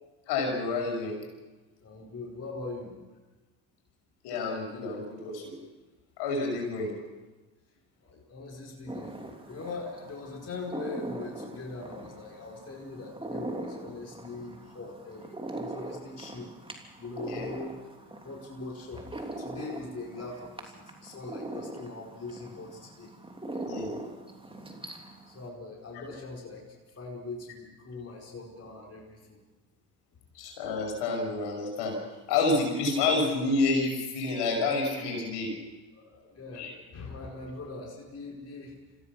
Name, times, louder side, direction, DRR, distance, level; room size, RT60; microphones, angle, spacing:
voice 1, 0.3-1.2 4.2-5.5 6.2-6.9 17.2-17.5 23.6-24.0 25.9-26.0 30.3-32.0 32.3-35.5 36.5-36.7, left 3 dB, 70° left, 0 dB, 6.3 m, -29 dB
voice 2, 1.8-3.0 8.0-9.2 9.5-16.5 17.0-17.7 18.2-23.1 25.3-29.4 35.9-38.8, left 3 dB, 35° left, -1 dB, 5.2 m, -41 dB
sound 1, 8.9-25.5, right 2 dB, 10° right, 3.3 m, -41 dB
26.5 x 16.0 x 6.3 m, 1.2 s
hypercardioid pair, 60°, 43 cm